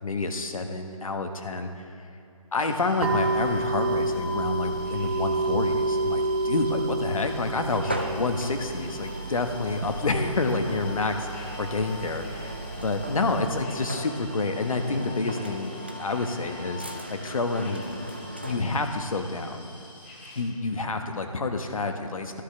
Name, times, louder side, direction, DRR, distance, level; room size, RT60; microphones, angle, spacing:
voice 1, 0.0-1.9 2.5-15.7 16.0-16.8 17.1-17.8 18.4-19.6 20.4-22.4, left 3 dB, 65° left, 6 dB, 1.2 m, -28 dB
sound 1, 2.6-20.4, left 1 dB, 20° left, 1.7 m, -49 dB
sound 2, 3.0-13.6, right 2 dB, 45° right, 0.7 m, -30 dB
sound 3, 7.6-18.9, equal, 20° right, 0.3 m, -38 dB
15.0 x 13.0 x 3.3 m, 2.6 s
hypercardioid pair, 170°, 19 cm